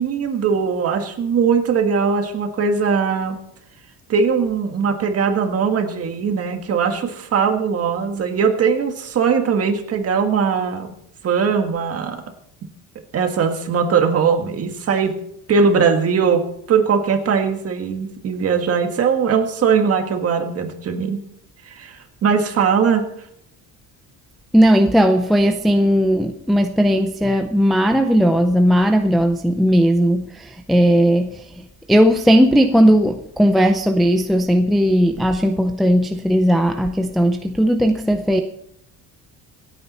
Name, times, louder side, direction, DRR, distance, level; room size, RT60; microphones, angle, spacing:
voice 1, 0.0-3.4 4.1-10.9 11.2-12.2 13.1-15.2 15.5-21.2 21.6-23.0, right 6 dB, 40° right, 1.7 m, -20 dB
voice 2, 24.5-31.4 31.9-38.4, equal, ahead, 0.5 m, -16 dB
26.5 x 9.0 x 4.3 m
cardioid pair, 175°, 38 cm